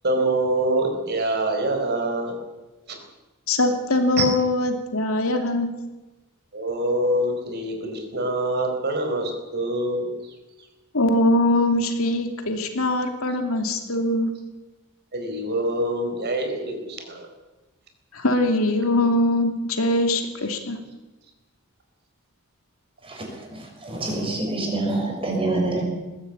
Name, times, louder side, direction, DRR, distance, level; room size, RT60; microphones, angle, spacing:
voice 1, 0.0-2.4 2.9-3.0 4.2-4.3 6.5-10.1 15.1-17.3, right 1 dB, 50° right, 4 dB, 4.4 m, -25 dB
voice 2, 3.5-5.7 10.9-14.3 18.1-20.8, left 1 dB, 70° left, 5 dB, 2.8 m, -22 dB
voice 3, 23.5-25.8, right 2 dB, 25° right, 0 dB, 6.6 m, -26 dB
20.5 x 15.5 x 8.6 m, 1.1 s
head